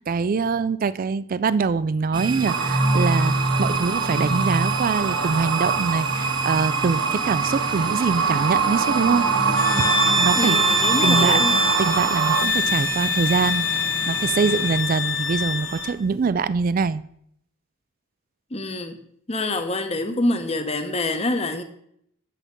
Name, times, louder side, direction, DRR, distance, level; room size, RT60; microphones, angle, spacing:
voice 1, 0.0-9.9 10.2-10.6 11.0-11.4 11.8-13.7 14.1-17.0, right 5 dB, 40° right, 0.3 m, -24 dB
sound 1, 2.1-14.8, right 2 dB, 25° right, 1.1 m, -27 dB
sound 2, 2.5-12.4, right 6 dB, 70° right, 0.7 m, -25 dB
sound 3, 9.5-16.0, left 1 dB, 75° left, 1.6 m, -24 dB
voice 2, 10.4-11.5 18.5-19.0 19.3-21.6, left 2 dB, 30° left, 0.9 m, -26 dB
8.5 x 7.2 x 5.3 m
head